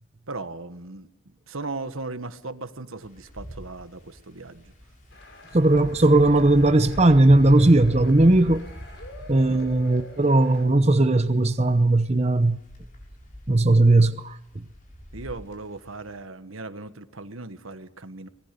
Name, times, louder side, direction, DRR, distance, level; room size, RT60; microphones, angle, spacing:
voice 1, 0.3-1.1 1.5-4.7 9.5-9.6 15.1-18.3, right 3 dB, 85° right, 1.5 m, -37 dB
Wind, 3.0-16.1, equal, 40° left, 6.9 m, -43 dB
sound 1, 5.1-10.6, left 2 dB, 60° left, 7.1 m, -48 dB
voice 2, 5.5-8.6 9.3-12.6 13.5-14.6, right 2 dB, 30° right, 0.8 m, -18 dB
25.5 x 19.5 x 6.8 m
head